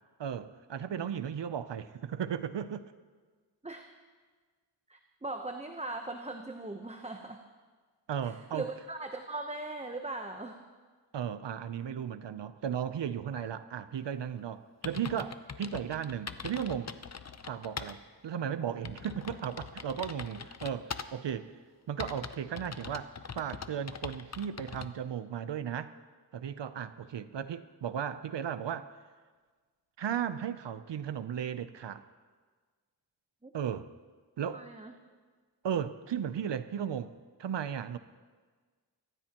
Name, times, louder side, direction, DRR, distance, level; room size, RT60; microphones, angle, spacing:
voice 1, 0.2-2.8 8.1-8.7 11.1-16.9 17.5-21.5 21.9-25.9 26.3-28.9 30.0-32.0 33.5-33.9 34.4-34.6 35.6-37.1 37.4-38.0, right 8 dB, 70° right, 13 dB, 0.7 m, -35 dB
voice 2, 4.9-7.4 8.2-10.6 13.3-13.5 33.4-33.5 34.5-34.9, right 2 dB, 15° right, 4 dB, 0.9 m, -40 dB
sound 1, 14.4-14.5 14.8-18.0 18.3-18.4 18.8-21.3 22.0-24.9, left 6 dB, 35° left, 0.7 m, -42 dB
23.5 x 15.0 x 3.0 m, 1.5 s
wide cardioid pair, 65°, 44 cm